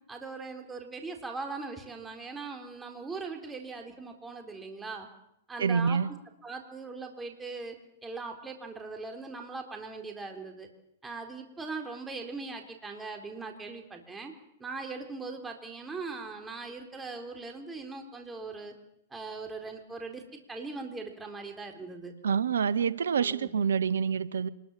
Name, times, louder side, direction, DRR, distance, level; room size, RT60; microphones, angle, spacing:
voice 1, 0.1-5.1 5.5-6.0 6.4-7.8 8.0-10.7 11.0-14.3 14.6-18.7 19.1-20.2 20.5-22.1 23.2-23.6, right 3 dB, 10° right, 4 dB, 4.1 m, -40 dB
voice 2, 5.6-6.1 22.2-24.5, right 6 dB, 85° right, 17 dB, 0.8 m, -27 dB
25.0 x 21.5 x 7.5 m, 0.78 s
hypercardioid pair, 120°, 0 cm